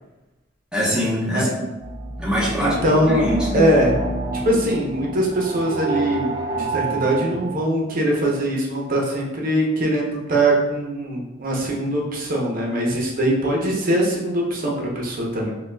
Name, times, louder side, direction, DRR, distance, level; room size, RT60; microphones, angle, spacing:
voice 1, 0.7-1.7 2.2-2.8 3.1-3.6, equal, 5° right, -6 dB, 0.9 m, -23 dB
sound 1, 1.8-7.6, right 3 dB, 20° right, 0.3 m, -28 dB
voice 2, 2.6-4.0 4.4-6.3 6.6-15.5, right 1 dB, 45° right, -2 dB, 0.7 m, -22 dB
5.5 x 2.3 x 2.2 m, 1.0 s
head